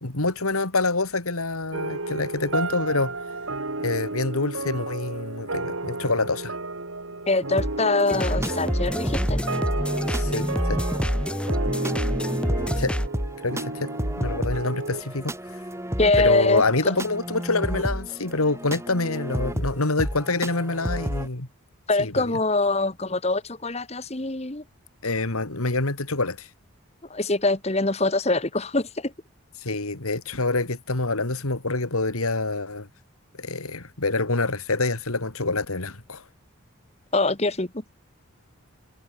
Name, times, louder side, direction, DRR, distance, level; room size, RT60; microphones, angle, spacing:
voice 1, 0.0-3.1 3.8-6.5 10.1-10.8 12.8-12.9 13.4-13.9 14.2-15.6 16.2-21.5 22.0-22.3 25.0-26.5 29.6-32.9 33.4-36.2, left 3 dB, 90° left, 2.7 m, -26 dB
sound 1, 1.7-15.0, right 2 dB, 70° right, 2.7 m, -32 dB
voice 2, 7.3-9.4 16.0-16.6 21.9-24.6 27.1-29.1 37.1-37.7, left 2 dB, 30° left, 1.4 m, -23 dB
sound 2, 7.6-21.3, equal, 15° right, 5.2 m, -32 dB
sound 3, 8.1-13.1, equal, 5° left, 1.6 m, -27 dB
head